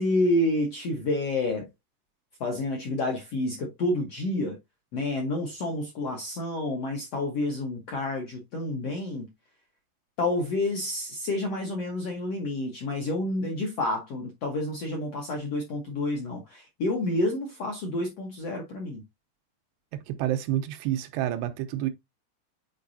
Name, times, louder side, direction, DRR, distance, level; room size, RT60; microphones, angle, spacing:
voice 1, 0.0-1.7 2.4-4.6 4.9-9.3 10.2-19.0, left 2 dB, 65° left, 1.6 m, -29 dB
voice 2, 20.1-21.9, right 13 dB, 85° right, 3.0 m, -28 dB
8.4 x 4.7 x 2.7 m
omnidirectional pair, 4.7 m